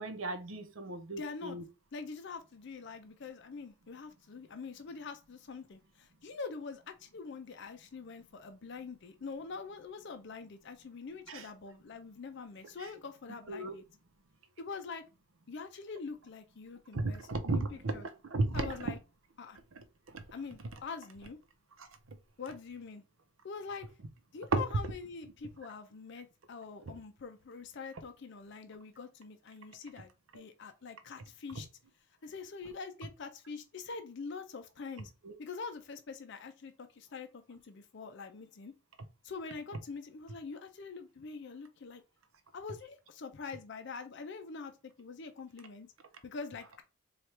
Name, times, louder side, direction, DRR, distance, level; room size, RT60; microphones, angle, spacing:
voice 1, 0.0-1.6 11.3-11.4 13.5-13.7 16.9-17.9 18.3-18.7 24.5-24.6 35.2-35.3, right 2 dB, 75° right, 0.7 m, -33 dB
voice 2, 1.1-1.6 1.9-13.8 14.6-15.0 15.5-18.1 18.5-19.0 19.4-19.6 20.3-21.4 22.4-23.0 23.4-23.9 24.3-31.7 32.2-35.1 35.4-38.7 39.2-42.0 42.5-44.7 45.0-45.9 46.2-46.8, left 4 dB, 55° left, 0.5 m, -44 dB
4.3 x 2.4 x 3.2 m
head